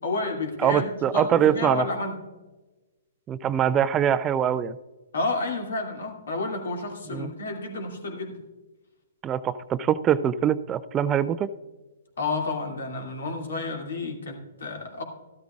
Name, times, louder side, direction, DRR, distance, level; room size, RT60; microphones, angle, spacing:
voice 1, 0.0-2.2 5.1-8.4 12.2-15.0, left 3 dB, 70° left, 2 dB, 2.4 m, -30 dB
voice 2, 0.6-1.9 3.3-4.8 7.1-7.3 9.2-11.5, right 9 dB, 20° right, 15 dB, 0.4 m, -23 dB
13.5 x 12.5 x 2.4 m, 1.2 s
figure-of-eight pair, 125°, 0 cm